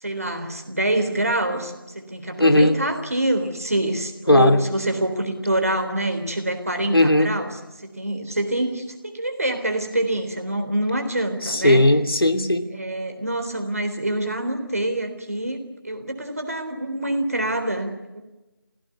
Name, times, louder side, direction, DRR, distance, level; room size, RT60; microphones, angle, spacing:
voice 1, 0.0-7.5 7.8-11.8 12.7-15.6 15.8-18.2, right 1 dB, 40° right, 6 dB, 3.6 m, -25 dB
voice 2, 2.4-2.7 4.3-4.6 6.9-7.3 11.4-12.7, left 1 dB, 80° left, 7 dB, 2.8 m, -17 dB
27.0 x 17.0 x 9.5 m, 1.1 s
figure-of-eight pair, 175°, 12 cm